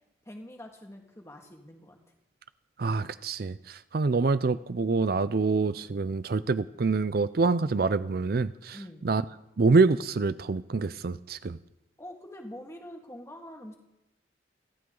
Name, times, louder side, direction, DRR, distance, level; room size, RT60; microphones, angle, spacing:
voice 1, 0.3-2.0 8.7-9.1 12.0-13.8, left 1 dB, 15° left, 2 dB, 2.0 m, -45 dB
voice 2, 2.8-8.8 9.0-9.2 9.6-11.6, right 4 dB, 50° right, 14 dB, 0.5 m, -26 dB
30.0 x 12.5 x 3.9 m, 0.90 s
head